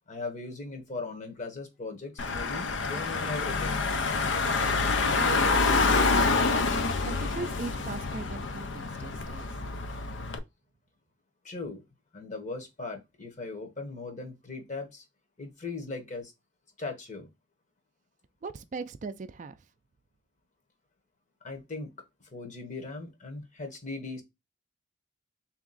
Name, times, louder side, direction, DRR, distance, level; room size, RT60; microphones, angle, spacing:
voice 1, 0.1-3.9 11.4-11.8 12.1-15.0 15.4-16.3 16.8-17.3 21.4-21.9 22.3-24.2, left 3 dB, 40° left, 1.1 m, -38 dB
Car / Engine, 2.2-10.4, left 3 dB, 80° left, 0.6 m, -27 dB
voice 2, 5.1-6.6 7.0-9.5 18.4-19.6, right 3 dB, 40° right, 0.4 m, -40 dB
3.4 x 2.9 x 3.9 m
head